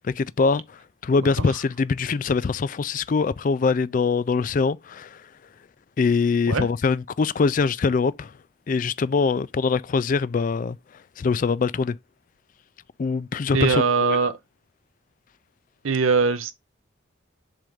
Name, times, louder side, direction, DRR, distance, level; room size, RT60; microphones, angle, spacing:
voice 1, 0.2-0.6 1.0-5.2 6.0-8.3 8.7-10.8 11.2-12.0 13.0-14.2, left 4 dB, 40° left, 0.3 m, -23 dB
voice 2, 13.5-14.4 15.8-16.5, right 5 dB, 80° right, 0.6 m, -21 dB
7.5 x 2.6 x 5.0 m
head